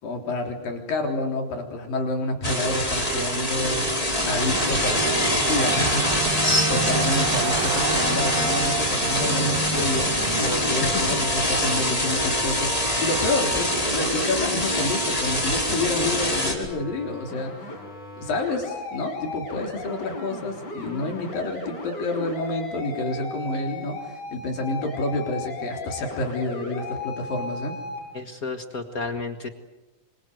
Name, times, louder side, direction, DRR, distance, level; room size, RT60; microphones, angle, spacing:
voice 1, 0.0-3.9 4.3-6.1 6.7-10.1 10.4-17.8 18.2-27.8, left 2 dB, 75° left, 3 dB, 5.4 m, -29 dB
sound 1, 2.4-16.5, equal, 10° left, 5.0 m, -24 dB
sound 2, 4.4-10.4, right 9 dB, 65° right, 1.5 m, -33 dB
voice 2, 6.4-7.2 10.9-11.1 28.1-29.5, left 2 dB, 50° left, 7 dB, 1.0 m, -29 dB
sound 3, 16.6-28.0, left 2 dB, 30° left, 5.5 m, -36 dB
26.0 x 26.0 x 7.9 m, 1.0 s
omnidirectional pair, 4.0 m